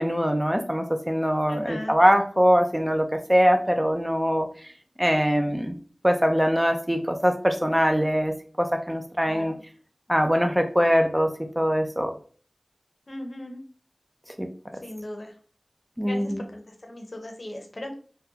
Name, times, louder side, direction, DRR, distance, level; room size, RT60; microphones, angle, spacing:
voice 1, 0.0-4.7 5.0-5.8 6.0-9.5 10.1-11.3 11.6-12.1 14.4-14.5 16.0-16.4, equal, 10° right, 5 dB, 0.4 m, -22 dB
voice 2, 1.5-1.9 9.2-9.6 13.1-13.6 14.8-15.3 16.1-17.9, left 1 dB, 60° left, 3 dB, 0.7 m, -38 dB
3.6 x 2.2 x 2.7 m, 0.43 s
wide cardioid pair, 55°, 0 cm